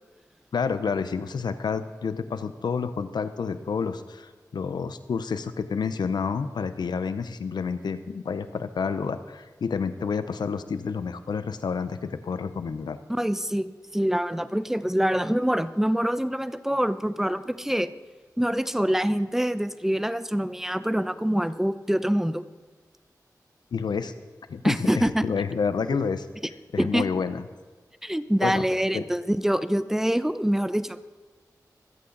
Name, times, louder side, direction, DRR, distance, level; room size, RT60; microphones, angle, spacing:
voice 1, 0.5-13.0 23.7-24.1 24.5-26.3 26.7-27.4 28.4-28.6 28.9-29.0, left 5 dB, 90° left, 12 dB, 0.7 m, -29 dB
voice 2, 13.1-17.9 18.4-22.4 24.6-25.3 26.8-27.1 28.0-31.1, equal, 5° right, 13 dB, 0.8 m, -25 dB
24.5 x 8.5 x 4.0 m, 1.4 s
cardioid pair, 40°, 7 cm